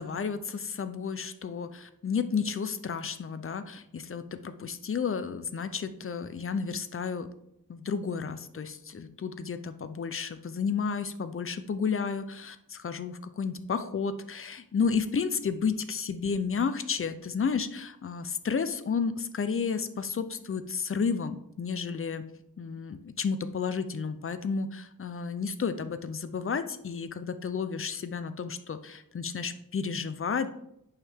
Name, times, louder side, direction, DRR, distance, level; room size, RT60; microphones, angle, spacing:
voice 1, 0.0-7.3 7.7-22.2 22.6-30.5, left 5 dB, 40° left, 11 dB, 0.6 m, -32 dB
8.6 x 6.5 x 3.6 m, 0.78 s
wide cardioid pair, 135°, 34 cm